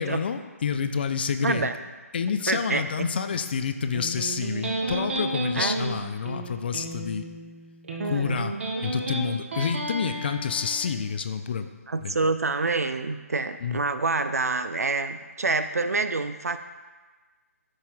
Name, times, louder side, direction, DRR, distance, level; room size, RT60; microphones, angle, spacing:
voice 1, 0.0-1.7 2.1-7.3 8.0-8.6 8.8-11.7 12.0-12.2 13.6-13.8, left 6 dB, 40° left, 9 dB, 0.5 m, -28 dB
voice 2, 1.4-1.7 2.5-3.1 5.5-5.8 7.8-8.5 11.9-16.6, right 3 dB, 70° right, 10 dB, 0.5 m, -27 dB
Electric guitar, 3.9-10.9, right 2 dB, 50° right, 1.3 m, -32 dB
12.5 x 5.5 x 2.4 m, 1.3 s
figure-of-eight pair, 145°, 9 cm